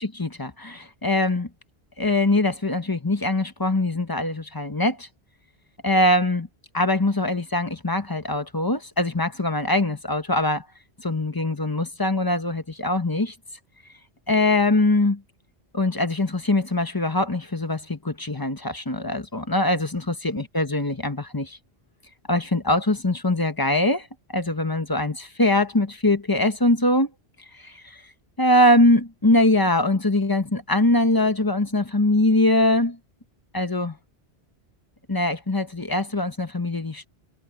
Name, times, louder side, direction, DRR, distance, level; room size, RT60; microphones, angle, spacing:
voice 1, 0.0-1.5 2.0-5.1 5.8-6.5 6.7-10.6 11.0-13.3 14.3-15.2 15.7-19.9 20.2-21.6 22.3-27.1 27.6-28.0 28.4-33.0 33.5-34.0 35.1-37.1, left 1 dB, 20° left, 1.2 m, -22 dB
omnidirectional pair, 1.1 m